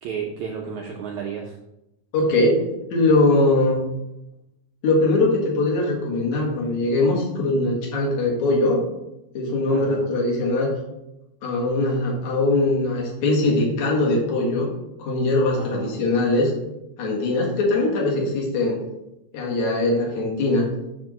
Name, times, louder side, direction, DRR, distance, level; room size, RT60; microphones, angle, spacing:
voice 1, 0.0-1.6 9.7-10.1 15.6-16.0, right 6 dB, 85° right, 0 dB, 1.6 m, -33 dB
voice 2, 2.1-2.6 2.9-3.8 4.8-8.8 9.3-10.7 11.4-14.7 15.0-16.5 17.0-18.8 19.3-20.7, left 2 dB, 55° left, -3 dB, 2.6 m, -21 dB
7.5 x 3.5 x 5.9 m, 0.90 s
omnidirectional pair, 4.3 m